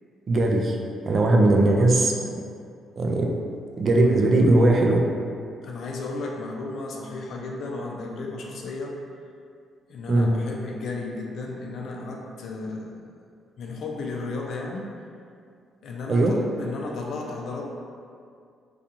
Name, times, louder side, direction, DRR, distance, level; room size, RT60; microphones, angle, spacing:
voice 1, 0.3-0.8 1.1-2.1 3.0-3.3 3.8-5.0 10.1-10.3 16.1-16.4, right 2 dB, 45° right, 1 dB, 0.3 m, -19 dB
voice 2, 5.6-9.0 9.9-13.0 13.6-14.9 15.8-17.7, left 3 dB, 65° left, 0 dB, 0.4 m, -34 dB
2.4 x 2.3 x 2.8 m, 2.3 s
cardioid pair, 90°, 0 cm